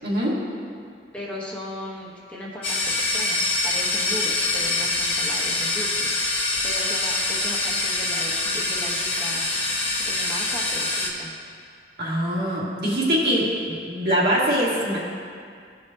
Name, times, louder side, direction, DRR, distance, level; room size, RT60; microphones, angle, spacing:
voice 1, 0.0-0.4 12.0-15.0, equal, 60° right, -6 dB, 1.9 m, -23 dB
voice 2, 1.1-9.5 9.8-11.3, left 1 dB, 5° left, -6 dB, 1.0 m, -37 dB
sound 1, 2.6-11.1, left 2 dB, 35° left, 1.1 m, -25 dB
15.0 x 5.3 x 2.7 m, 2.2 s
head